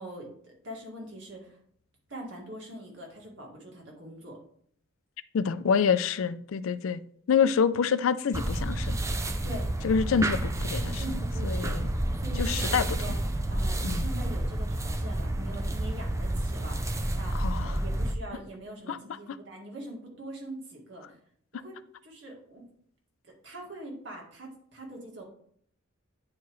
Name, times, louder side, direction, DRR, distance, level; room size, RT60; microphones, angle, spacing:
voice 1, 0.0-1.6 2.1-4.4 9.4-9.7 10.7-13.2 13.5-21.2 21.5-22.6 23.2-25.2, right 1 dB, 60° right, 2.0 m, -43 dB
voice 2, 5.3-7.0 7.3-9.0 9.8-11.0 11.4-11.9 12.4-12.9 13.8-14.1 17.3-17.8 18.9-19.0, left 6 dB, 80° left, 0.4 m, -26 dB
sound 1, 8.3-18.1, right 1 dB, 15° right, 0.4 m, -30 dB
9.4 x 4.6 x 3.1 m
head